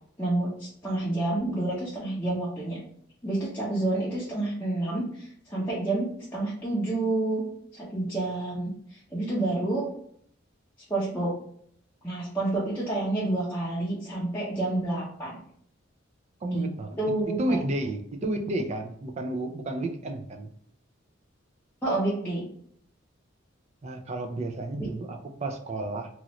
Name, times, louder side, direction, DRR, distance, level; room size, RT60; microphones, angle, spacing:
voice 1, 0.2-2.8 3.2-7.4 7.7-9.9 10.9-11.3 12.0-15.4 16.5-16.7 17.0-17.6 21.8-22.4 24.8-24.9, right 2 dB, 10° left, -9 dB, 0.7 m, -29 dB
voice 2, 16.4-17.0 17.4-20.5 23.8-26.1, right 1 dB, 35° right, 5 dB, 0.4 m, -31 dB
3.0 x 2.5 x 3.0 m, 0.64 s
head